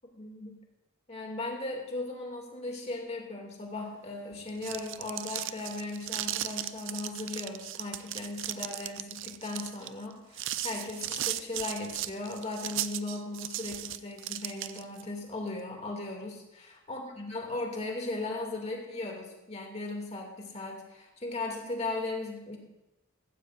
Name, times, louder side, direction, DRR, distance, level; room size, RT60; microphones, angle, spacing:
voice 1, 0.2-0.6 1.1-22.6, left 2 dB, 30° left, 0 dB, 2.5 m, -37 dB
sound 1, 4.4-15.0, right 13 dB, 60° right, 0.5 m, -36 dB
15.0 x 14.5 x 2.6 m, 0.95 s
head